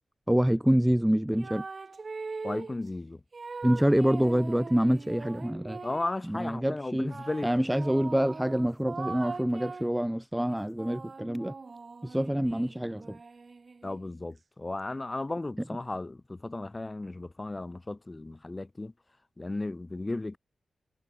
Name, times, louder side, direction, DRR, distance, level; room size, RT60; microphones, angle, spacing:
voice 1, 0.3-1.6 3.6-5.8 6.3-7.1 7.4-11.6 12.0-13.2, equal, 5° right, 0.5 m, -26 dB
sound 1, 1.3-2.8 3.3-6.2 7.1-10.0 10.5-14.1, right 4 dB, 35° right, 0.8 m, -41 dB
voice 2, 2.4-3.2 5.8-7.5 13.8-18.9 19.4-20.4, left 2 dB, 20° left, 1.2 m, -35 dB
wide cardioid pair, 145°, 0 cm